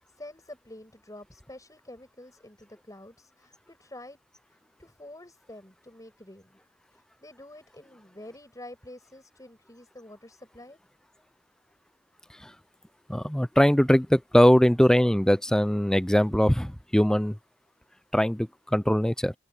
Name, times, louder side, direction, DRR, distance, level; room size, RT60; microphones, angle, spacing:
voice 1, 0.2-4.2 4.8-6.6 6.9-10.8, left 1 dB, 20° left, 7.4 m, -47 dB
voice 2, 13.1-17.4 18.1-19.3, equal, 5° left, 0.4 m, -21 dB
head